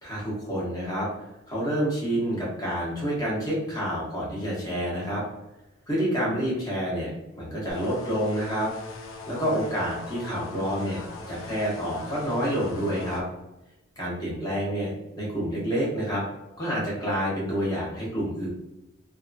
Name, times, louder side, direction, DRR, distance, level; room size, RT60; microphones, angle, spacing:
voice 1, 0.0-1.1 1.5-5.2 5.9-7.1 7.4-8.7 9.3-11.0 11.3-13.2 14.0-16.2 16.6-18.5, equal, 20° left, -5 dB, 1.0 m, -28 dB
sound 1, 7.7-13.2, left 3 dB, 75° left, 0.5 m, -40 dB
2.8 x 2.4 x 2.5 m, 0.95 s
head